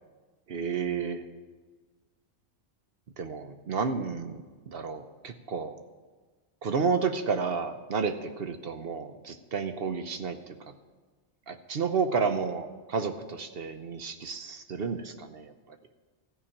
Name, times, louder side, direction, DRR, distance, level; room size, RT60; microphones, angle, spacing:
voice 1, 0.5-1.2 3.2-5.7 6.6-10.4 10.7-10.8 11.5-15.5, right 5 dB, 60° right, 8 dB, 0.9 m, -31 dB
14.5 x 6.0 x 8.7 m, 1.4 s
omnidirectional pair, 1.2 m